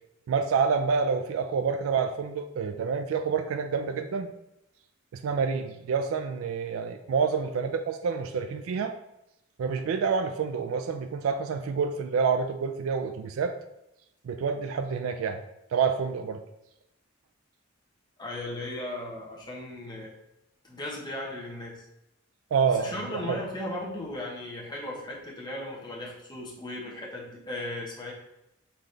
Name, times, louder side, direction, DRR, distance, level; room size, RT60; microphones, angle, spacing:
voice 1, 0.3-4.3 5.1-9.0 9.6-13.6 14.2-15.4 15.7-16.4 22.5-23.4, right 5 dB, 70° right, 7 dB, 0.3 m, -28 dB
voice 2, 18.2-20.1 20.6-21.8 22.7-28.1, left 1 dB, 20° left, -4 dB, 1.0 m, -37 dB
4.1 x 3.8 x 3.2 m, 0.86 s
head